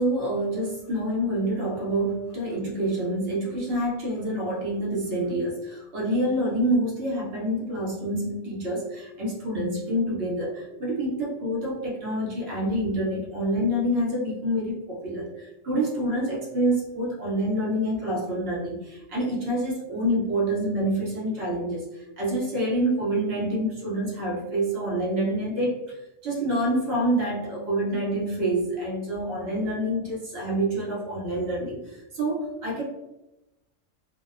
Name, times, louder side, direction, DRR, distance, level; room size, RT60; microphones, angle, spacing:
voice 1, 0.0-21.8 22.2-26.0 26.2-32.8, right 1 dB, 55° right, -4 dB, 0.8 m, -27 dB
2.7 x 2.0 x 2.3 m, 0.96 s
omnidirectional pair, 1.4 m